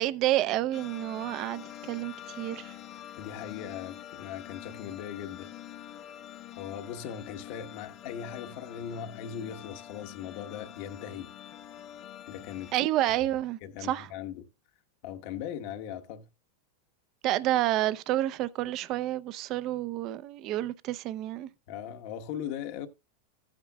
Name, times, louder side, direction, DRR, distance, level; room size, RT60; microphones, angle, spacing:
voice 1, 0.0-2.7 12.7-14.1 17.2-21.5, right 14 dB, 35° right, 0.6 m, -29 dB
sound 1, 0.7-12.7, left 11 dB, 30° left, 0.8 m, -46 dB
voice 2, 3.2-5.5 6.6-11.3 12.3-12.7 13.6-14.5 15.0-16.3 21.7-22.9, left 9 dB, 50° left, 1.2 m, -39 dB
14.5 x 8.8 x 2.3 m
supercardioid pair, 155°, 0 cm